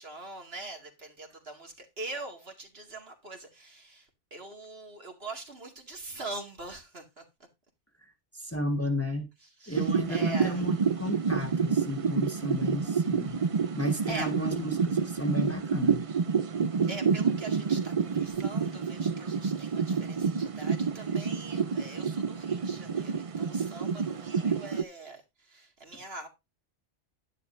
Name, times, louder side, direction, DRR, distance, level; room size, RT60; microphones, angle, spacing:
voice 1, 0.0-7.2 9.6-10.6 13.8-14.3 16.9-26.3, right 2 dB, 55° right, 2.4 m, -43 dB
voice 2, 8.0-9.3 9.7-13.4 13.8-16.0, left 1 dB, 10° left, 1.4 m, -33 dB
sound 1, 9.7-24.8, right 5 dB, 40° right, 0.6 m, -29 dB
11.5 x 11.0 x 2.6 m
omnidirectional pair, 1.2 m